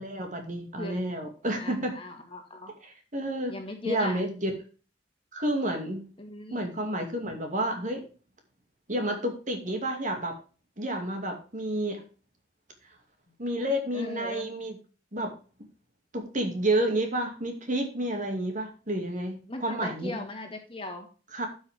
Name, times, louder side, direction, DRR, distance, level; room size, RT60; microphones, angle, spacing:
voice 1, 0.0-1.9 2.8-3.6 3.8-4.5 5.3-6.0 6.5-8.0 8.9-10.4 10.8-12.0 13.4-14.8 15.1-15.3 16.1-20.2 21.3-21.5, right 1 dB, 40° right, 4 dB, 2.5 m, -30 dB
voice 2, 1.6-2.7 3.5-4.2 6.2-6.7 13.9-14.5 19.5-21.1, left 2 dB, 30° left, 4 dB, 2.0 m, -39 dB
11.5 x 6.3 x 3.6 m, 0.36 s
head